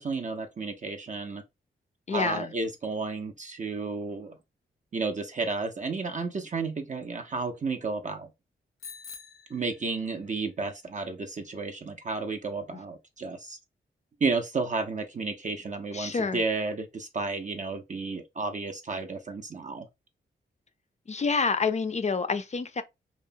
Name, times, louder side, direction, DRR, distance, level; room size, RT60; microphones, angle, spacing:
voice 1, 0.0-1.4 2.1-4.4 4.9-8.3 9.5-13.6 14.2-19.9, right 3 dB, 35° right, 0.4 m, -32 dB
voice 2, 2.1-2.5 15.9-16.4 21.1-22.8, left 4 dB, 35° left, 0.4 m, -28 dB
Bicycle bell, 8.8-10.4, left 5 dB, 85° left, 0.6 m, -46 dB
2.8 x 2.1 x 2.5 m
supercardioid pair, 45°, 21 cm